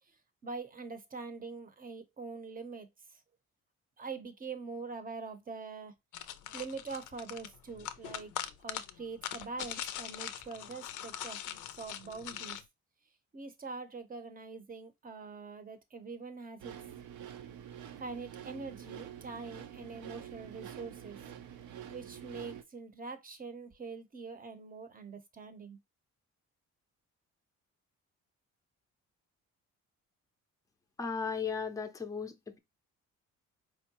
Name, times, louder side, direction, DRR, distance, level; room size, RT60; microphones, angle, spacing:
voice 1, 0.4-3.2 4.0-5.9 6.5-8.3 8.6-12.6 13.3-16.7 18.0-21.2 21.9-25.8, right 4 dB, 30° right, 0.7 m, -44 dB
sound 1, 6.1-12.6, left 11 dB, 80° left, 0.5 m, -42 dB
sound 2, 16.6-22.6, right 10 dB, 70° right, 0.6 m, -47 dB
voice 2, 31.0-32.6, left 5 dB, 10° left, 0.5 m, -36 dB
4.5 x 2.1 x 2.8 m
cardioid pair, 90°, 30 cm